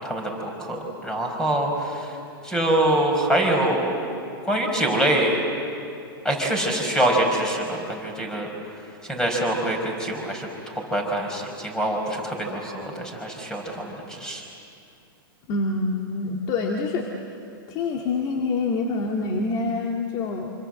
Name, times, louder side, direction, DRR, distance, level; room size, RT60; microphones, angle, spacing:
voice 1, 0.0-2.2 2.4-4.1 4.4-5.4 6.2-8.5 9.1-10.5 10.9-14.4, right 1 dB, 5° left, 1 dB, 5.2 m, -24 dB
voice 2, 15.5-17.1 17.7-20.5, left 3 dB, 35° left, 1 dB, 2.0 m, -26 dB
26.5 x 25.0 x 7.8 m, 2.6 s
hypercardioid pair, 140°, 12 cm